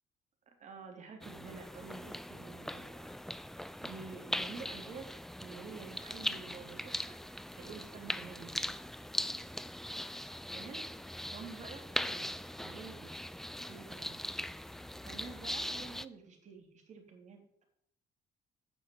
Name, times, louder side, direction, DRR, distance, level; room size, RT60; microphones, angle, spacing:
voice 1, 0.6-3.1 3.4-5.1 5.4-7.2 7.5-8.7 10.5-10.8 11.3-12.3 12.6-13.1 13.6-14.2 15.0-17.6, right 5 dB, 45° right, 3 dB, 3.3 m, -49 dB
sound 1, 1.2-16.1, left 1 dB, ahead, 0.4 m, -40 dB
9.3 x 6.5 x 8.7 m, 0.74 s
cardioid pair, 110°, 17 cm